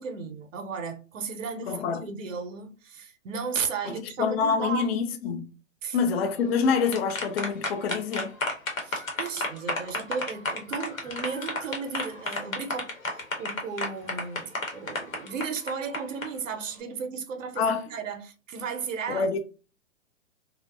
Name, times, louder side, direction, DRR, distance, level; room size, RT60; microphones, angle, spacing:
voice 1, 0.0-4.9 5.8-6.0 8.8-19.3, right 5 dB, 75° right, 0.6 m, -35 dB
voice 2, 1.7-2.0 3.9-5.4 5.9-8.3 17.6-17.8 19.1-19.4, left 5 dB, 50° left, 0.4 m, -26 dB
sound 1, 6.5-16.3, left 2 dB, 85° left, 1.0 m, -32 dB
2.5 x 2.1 x 2.3 m
hypercardioid pair, 125°, 39 cm